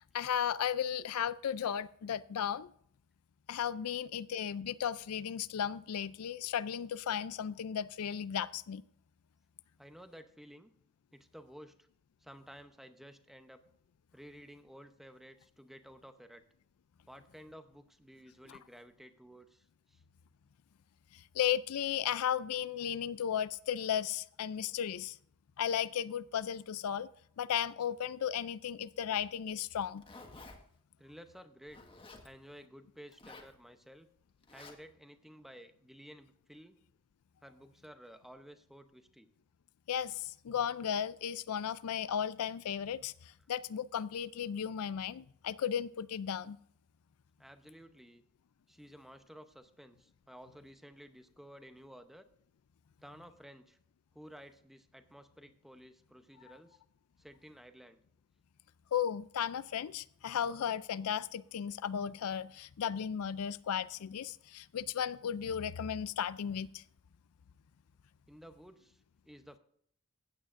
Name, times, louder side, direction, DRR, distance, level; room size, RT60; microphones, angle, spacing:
voice 1, 0.0-2.7 3.5-8.8 18.5-18.6 21.1-25.2 25.6-27.1 27.4-30.0 39.9-46.6 58.9-66.8, left 9 dB, 75° left, 0.4 m, -35 dB
voice 2, 9.8-10.7 11.1-11.9 12.2-13.6 14.1-16.4 17.1-20.0 31.0-31.8 32.2-34.1 34.5-36.8 37.4-39.3 47.4-48.2 48.7-52.3 53.0-53.8 54.1-56.8 57.2-58.0 68.3-69.6, equal, ahead, 0.7 m, -54 dB
Zipper (clothing), 29.6-30.6 31.7-32.3 33.1-33.5 34.4-34.7, left 3 dB, 25° left, 1.5 m, -52 dB
16.0 x 8.9 x 2.5 m
head